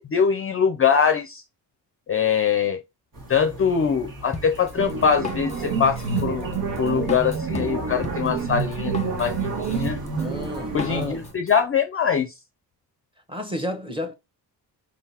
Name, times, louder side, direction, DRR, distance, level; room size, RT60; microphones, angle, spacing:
voice 1, 0.0-1.4 2.1-2.8 3.3-6.5 6.8-10.0 10.7-12.3, left 7 dB, 35° left, 0.5 m, -23 dB
sound 1, 3.1-11.3, right 1 dB, 50° right, 2.0 m, -43 dB
Drum kit, 4.3-11.5, left 4 dB, 15° left, 0.8 m, -37 dB
sound 2, 4.8-11.1, right 5 dB, 85° right, 1.7 m, -28 dB
voice 2, 10.2-11.2 13.3-14.1, left 1 dB, 10° right, 1.1 m, -31 dB
4.8 x 3.8 x 2.8 m
cardioid pair, 105°, 42 cm